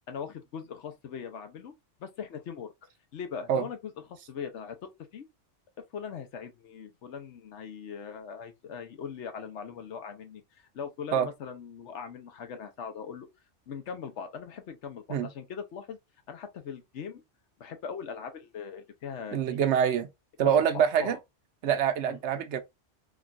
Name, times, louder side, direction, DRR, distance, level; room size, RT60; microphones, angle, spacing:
voice 1, 0.1-1.7 2.0-3.8 4.1-5.3 5.9-10.4 10.7-13.3 13.7-16.0 16.3-17.2 17.6-19.6 20.7-21.2 22.0-22.2, left 6 dB, 75° left, 1.1 m, -40 dB
voice 2, 19.3-20.1 20.4-21.2 21.6-22.6, right 8 dB, 75° right, 0.9 m, -25 dB
3.7 x 2.3 x 2.5 m
omnidirectional pair, 1.2 m